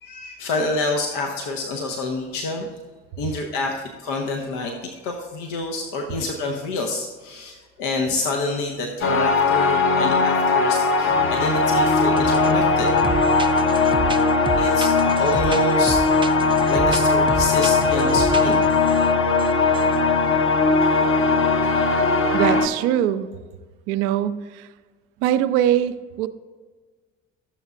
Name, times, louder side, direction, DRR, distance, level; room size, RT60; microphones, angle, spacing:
voice 1, 0.0-2.7 3.2-12.9 14.6-16.0 16.7-18.7, left 2 dB, 65° left, 3 dB, 1.0 m, -27 dB
sound 1, 9.0-22.7, left 3 dB, 35° left, 1.0 m, -19 dB
sound 2, 12.2-12.5 12.8-19.0 19.4-19.5 19.7-19.9, right 4 dB, 15° right, 0.5 m, -31 dB
voice 2, 22.3-23.3 23.9-24.7 25.2-26.3, right 11 dB, 70° right, 11 dB, 0.6 m, -22 dB
13.0 x 7.1 x 2.4 m, 1.4 s
hypercardioid pair, 55°, 35 cm